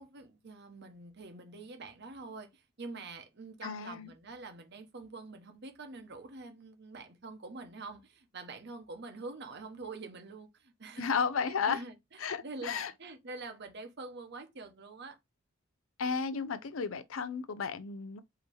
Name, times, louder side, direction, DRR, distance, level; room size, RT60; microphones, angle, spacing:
voice 1, 0.0-11.2 11.7-11.9 12.4-15.2, right 3 dB, 55° right, 1.0 m, -46 dB
voice 2, 3.6-4.1 11.0-11.8 12.2-12.9 16.0-18.2, left 6 dB, 75° left, 0.6 m, -33 dB
4.6 x 2.9 x 3.5 m
head